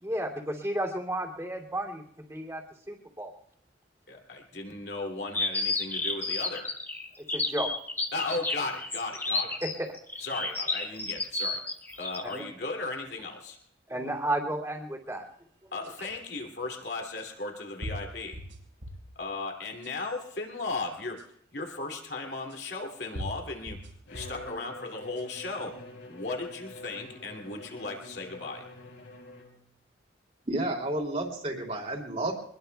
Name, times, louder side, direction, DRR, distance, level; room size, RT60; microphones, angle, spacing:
voice 1, 0.0-2.0 2.3-2.6 2.9-3.3 7.3-7.7 9.6-9.9 12.3-12.4 13.9-15.3, right 1 dB, 15° right, -2 dB, 2.6 m, -32 dB
voice 2, 4.1-6.7 8.1-9.6 10.2-11.6 12.0-13.6 15.7-18.4 19.1-21.2 21.5-23.8 24.1-25.8 26.1-28.7, left 3 dB, 60° left, 1 dB, 2.7 m, -36 dB
sound 1, 5.3-12.4, left 3 dB, 10° left, 1.1 m, -31 dB
sound 2, 15.8-15.9 17.2-17.3 17.8-19.1 19.6-20.2 21.2-21.3 22.5-22.6 23.1-24.5 25.0-25.5, equal, 70° right, 4.1 m, -40 dB
Bowed string instrument, 24.1-29.7, left 2 dB, 80° left, 6.1 m, -46 dB
voice 3, 30.5-32.4, right 1 dB, 35° right, 1 dB, 2.9 m, -31 dB
24.5 x 20.5 x 2.3 m, 0.67 s
head